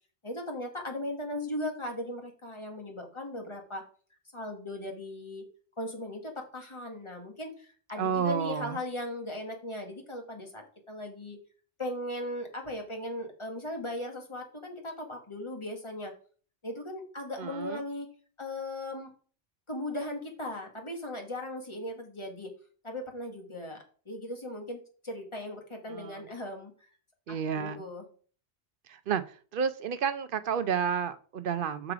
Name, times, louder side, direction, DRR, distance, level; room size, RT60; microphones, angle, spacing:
voice 1, 0.2-3.8 4.3-5.5 5.8-11.4 11.8-16.1 16.6-18.1 18.4-19.1 19.7-22.5 22.8-23.8 24.0-26.7 27.3-28.0, left 1 dB, 25° left, 3 dB, 1.4 m, -38 dB
voice 2, 8.0-8.8 17.4-17.8 25.9-26.2 27.3-27.8 28.9-29.2 29.5-31.9, right 7 dB, 60° right, 12 dB, 0.6 m, -31 dB
6.0 x 4.9 x 4.9 m, 0.42 s
omnidirectional pair, 1.3 m